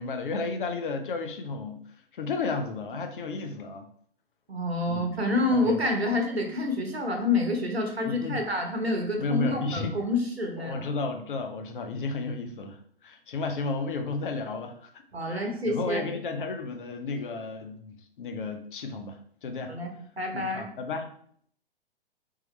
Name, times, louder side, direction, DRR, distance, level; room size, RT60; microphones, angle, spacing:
voice 1, 0.0-1.8 2.1-3.9 4.9-5.1 5.5-5.8 8.1-8.4 9.2-9.9 10.6-14.9 15.2-19.7 20.3-21.1, left 3 dB, 55° left, 6 dB, 0.6 m, -33 dB
voice 2, 4.5-10.8 15.1-16.0 19.7-19.9 20.2-20.7, left 2 dB, 90° right, 3 dB, 1.0 m, -28 dB
3.7 x 2.9 x 3.1 m, 0.62 s
figure-of-eight pair, 115°, 30 cm